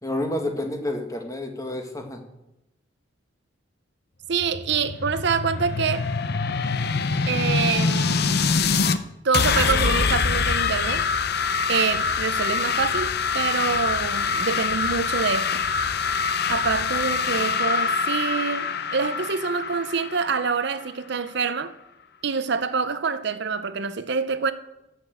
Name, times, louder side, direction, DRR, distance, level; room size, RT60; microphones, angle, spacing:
voice 1, 0.0-2.2, left 1 dB, 15° left, 1.5 m, -29 dB
sound 1, 4.3-9.0 9.3-20.9, left 5 dB, 55° left, 0.7 m, -24 dB
voice 2, 4.3-6.1 7.3-8.5 9.2-11.0 11.7-15.6 16.5-21.7 22.2-24.5, right 5 dB, 60° right, 0.7 m, -26 dB
13.5 x 6.0 x 7.8 m
head